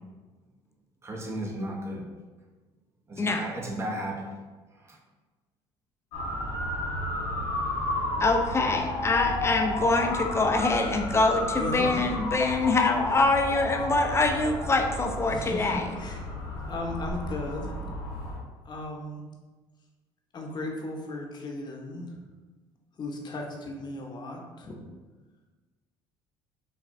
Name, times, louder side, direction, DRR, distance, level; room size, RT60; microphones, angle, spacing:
voice 1, 1.0-2.1 3.1-4.3 4.8-5.0, right 1 dB, 25° right, 0 dB, 0.9 m, -34 dB
Motor vehicle (road) / Siren, 6.1-18.4, left 1 dB, 85° left, 1.2 m, -32 dB
voice 2, 8.2-15.9, left 3 dB, 25° left, 3 dB, 0.6 m, -24 dB
voice 3, 15.3-16.2 16.6-17.8 18.6-19.2 20.3-22.1 23.0-24.8, left 2 dB, 40° left, 0 dB, 0.9 m, -36 dB
6.6 x 2.3 x 2.6 m, 1.3 s
supercardioid pair, 80°, 11 cm